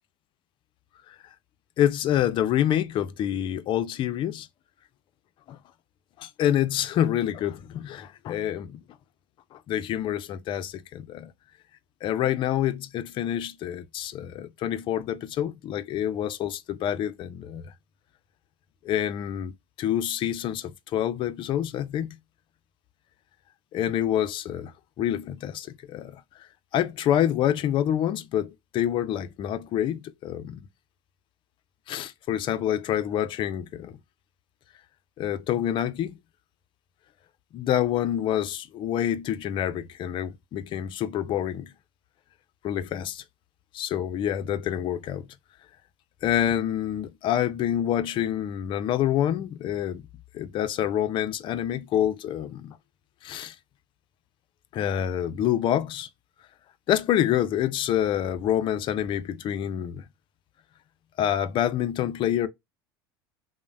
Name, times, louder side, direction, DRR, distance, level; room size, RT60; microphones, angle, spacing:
voice 1, 1.8-4.5 5.5-5.6 6.2-8.8 9.5-11.3 12.0-17.7 18.8-22.2 23.7-26.2 26.7-30.6 31.9-33.9 35.2-36.2 37.5-41.7 42.6-43.2 43.7-45.3 46.2-50.0 50.3-52.8 53.2-53.5 54.7-56.1 56.9-60.1 61.2-62.5, left 11 dB, 40° left, 0.4 m, -27 dB
3.1 x 2.0 x 2.4 m
hypercardioid pair, 85°, 12 cm